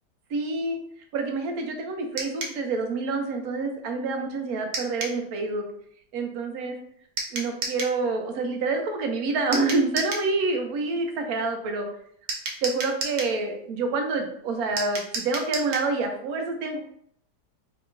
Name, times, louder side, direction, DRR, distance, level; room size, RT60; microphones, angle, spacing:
voice 1, 0.3-0.8 1.1-5.7 6.1-6.8 7.3-11.9 12.6-16.9, right 3 dB, 70° right, 4 dB, 1.1 m, -27 dB
sound 1, 2.2-2.6 4.7-5.2 7.2-8.0 9.5-10.3 12.3-13.4 14.8-15.9, right 3 dB, 90° right, 1.4 m, -32 dB
4.5 x 2.9 x 2.5 m, 0.66 s
omnidirectional pair, 1.7 m